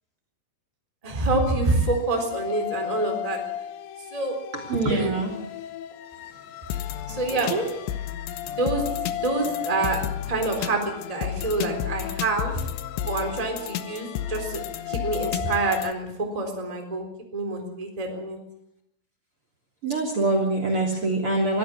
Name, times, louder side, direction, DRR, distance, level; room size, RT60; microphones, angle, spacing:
voice 1, 1.0-3.4 4.1-4.3 4.9-5.1 7.1-7.5 8.4-8.8 9.1-10.0 10.3-12.7 13.0-16.1 16.3-17.0 17.3-18.4, right 2 dB, 10° right, 3 dB, 3.3 m, -27 dB
sound 1, 1.3-15.9, left 11 dB, 90° left, 3.4 m, -33 dB
voice 2, 4.5-5.3 7.5-7.6 19.8-21.6, right 2 dB, 35° right, 4 dB, 3.6 m, -24 dB
24.0 x 15.0 x 8.5 m, 0.78 s
omnidirectional pair, 5.0 m